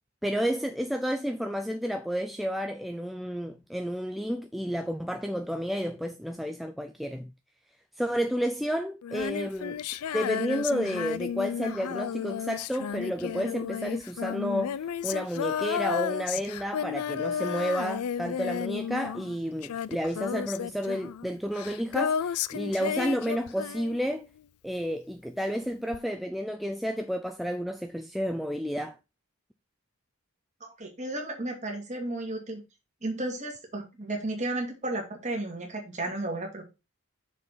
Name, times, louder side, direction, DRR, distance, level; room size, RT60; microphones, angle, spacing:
voice 1, 0.2-7.3 8.0-9.8 10.1-14.8 15.0-24.3 24.6-29.0, equal, ahead, 0.4 m, -31 dB
Female singing, 9.0-24.4 25.9-26.0, left 8 dB, 90° left, 0.4 m, -33 dB
voice 2, 30.6-32.6 33.0-36.7, right 2 dB, 30° right, 2.2 m, -33 dB
6.5 x 4.4 x 5.7 m
head